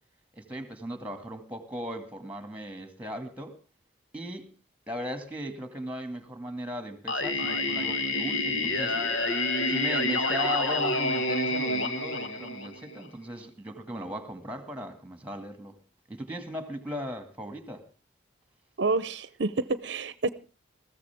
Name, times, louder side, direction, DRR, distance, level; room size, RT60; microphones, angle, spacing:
voice 1, 0.3-3.5 4.1-4.5 4.9-9.0 9.7-15.8 16.1-17.8, equal, 10° right, 2.2 m, -37 dB
Singing, 7.1-13.0, left 2 dB, 90° left, 1.7 m, -28 dB
voice 2, 18.8-20.3, right 3 dB, 65° right, 0.7 m, -28 dB
20.5 x 15.0 x 3.5 m
head